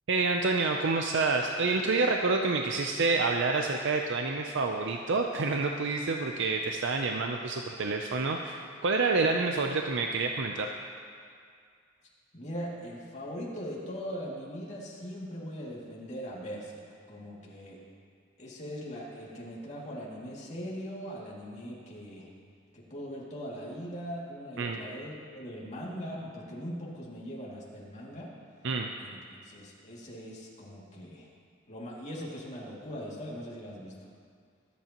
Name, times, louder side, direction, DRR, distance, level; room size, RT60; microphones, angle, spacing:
voice 1, 0.1-10.7 24.6-24.8 28.6-28.9, right 3 dB, 60° right, 3 dB, 0.6 m, -28 dB
voice 2, 12.3-17.8 18.4-22.3 22.7-28.3 29.0-29.2 29.4-31.3 31.7-33.9, equal, 35° left, -5 dB, 2.4 m, -40 dB
23.5 x 8.4 x 3.0 m, 2.2 s
head